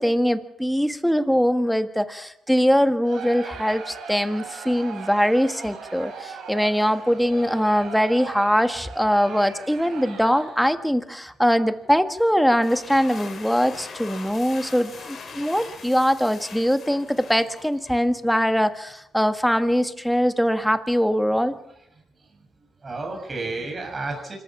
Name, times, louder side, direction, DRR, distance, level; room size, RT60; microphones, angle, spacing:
voice 1, 0.0-21.5, equal, ahead, 9 dB, 1.5 m, -22 dB
Crowd, 3.0-10.7, right 5 dB, 75° right, 6.6 m, -39 dB
voice 2, 7.7-8.2 11.8-11.9 14.5-15.7 16.9-17.0 19.6-19.7 20.4-20.5 21.3-21.5 22.2-22.4 22.8-24.4, right 3 dB, 30° right, 1 dB, 6.9 m, -35 dB
sound 1, 12.5-18.1, left 5 dB, 50° left, 5.0 m, -41 dB
25.5 x 14.5 x 7.3 m, 0.82 s
cardioid pair, 90°, 0 cm